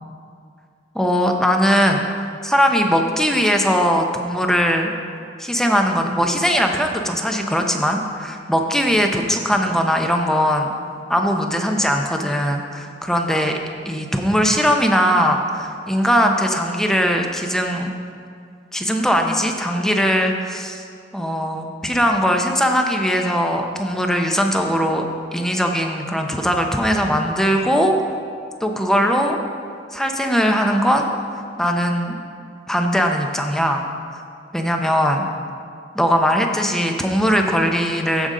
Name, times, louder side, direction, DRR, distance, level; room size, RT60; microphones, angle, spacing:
voice 1, 0.9-4.9 5.4-10.7 11.1-13.6 13.9-17.9 18.7-20.8 21.1-25.1 25.3-27.9 28.6-29.4 29.9-31.1 31.6-32.2 32.7-33.8 34.5-35.3 35.9-38.3, equal, 5° left, 3 dB, 0.6 m, -20 dB
14.5 x 5.2 x 3.7 m, 2.3 s
head